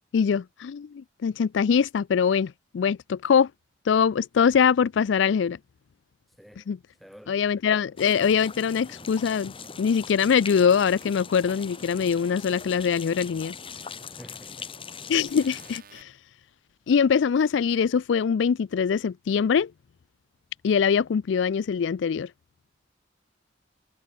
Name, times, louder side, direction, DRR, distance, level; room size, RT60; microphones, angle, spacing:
voice 1, 0.1-3.5 3.9-5.6 6.7-6.8 7.3-13.5 15.1-16.1 16.9-19.7 20.6-22.3, left 6 dB, 75° left, 0.4 m, -23 dB
voice 2, 6.4-6.7 7.0-7.4 14.2-15.0, equal, ahead, 1.7 m, -50 dB
sound 1, 8.0-15.8, left 5 dB, 30° left, 2.7 m, -41 dB
sound 2, 8.2-8.3 9.6-9.7 11.0-11.1 12.6-12.7 13.9-14.0 15.3-16.0, right 7 dB, 50° right, 3.0 m, -53 dB
head